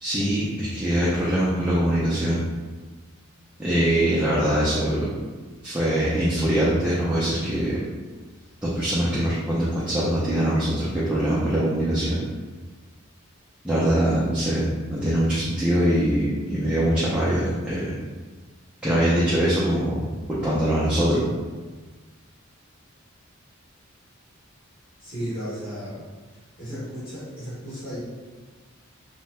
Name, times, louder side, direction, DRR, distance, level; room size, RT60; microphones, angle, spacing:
voice 1, 0.0-2.4 3.6-5.1 5.6-7.8 8.6-12.2 13.6-18.0 18.8-20.0 20.3-21.2, right 1 dB, 5° right, -10 dB, 0.4 m, -23 dB
voice 2, 25.0-26.0 26.6-28.0, equal, 65° left, -12 dB, 1.3 m, -34 dB
2.7 x 2.1 x 3.1 m, 1.4 s
head